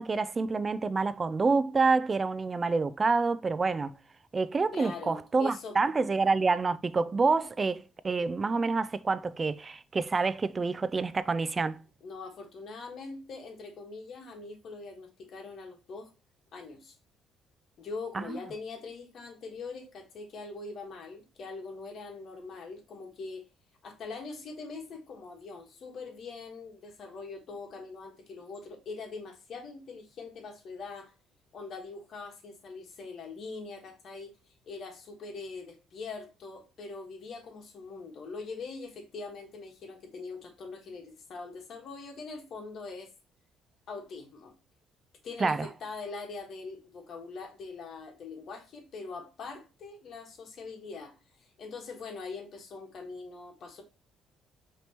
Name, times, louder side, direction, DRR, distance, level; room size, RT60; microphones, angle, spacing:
voice 1, 0.0-3.9 4.3-11.8 18.1-18.4 45.4-45.7, right 4 dB, 30° right, 0.3 m, -27 dB
voice 2, 4.7-5.8 12.0-16.1 16.5-17.0 17.8-23.4 23.8-31.1 31.5-34.4 34.7-43.1 43.9-44.5 45.2-53.8, left 4 dB, 55° left, 1.3 m, -42 dB
5.1 x 3.0 x 2.9 m
cardioid pair, 105°, 0 cm